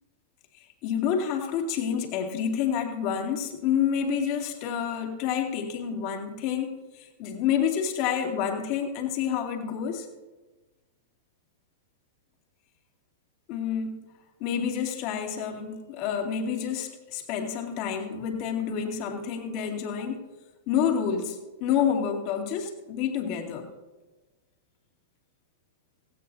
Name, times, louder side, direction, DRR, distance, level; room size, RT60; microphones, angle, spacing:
voice 1, 0.5-10.1 13.5-14.1 14.4-20.2 20.7-23.7, left 8 dB, 45° left, 2 dB, 2.5 m, -28 dB
17.0 x 16.0 x 2.7 m, 1.2 s
hypercardioid pair, 110°, 0 cm